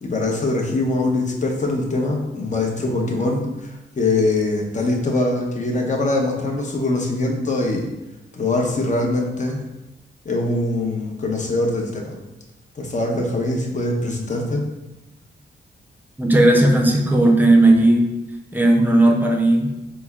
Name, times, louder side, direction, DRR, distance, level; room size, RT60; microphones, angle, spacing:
voice 1, 0.0-7.9 8.4-9.6 10.2-12.1 12.8-14.7, left 2 dB, 40° left, 0 dB, 0.9 m, -22 dB
voice 2, 16.2-18.1 18.5-19.7, right 1 dB, 10° right, 1 dB, 0.7 m, -15 dB
4.2 x 2.2 x 3.6 m, 0.96 s
cardioid pair, 75°, 20 cm